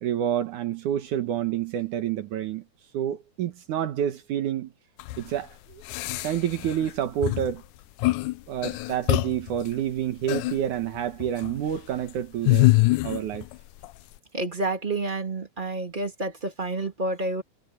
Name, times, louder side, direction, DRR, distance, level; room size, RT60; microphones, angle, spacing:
voice 1, 0.0-2.6 2.9-4.7 5.2-5.8 6.2-7.6 8.5-12.7 13.0-13.5, right 10 dB, 75° right, 2.8 m, -28 dB
sound 1, 5.0-5.2 5.9-6.9 7.2-7.5 8.0-8.3 8.6-9.6 10.3-10.6 11.2-11.6 12.5-13.5 13.8-13.9, left 21 dB, 85° left, 2.1 m, -24 dB
voice 2, 14.3-17.4, right 2 dB, 15° right, 2.3 m, -29 dB
omnidirectional pair, 3.6 m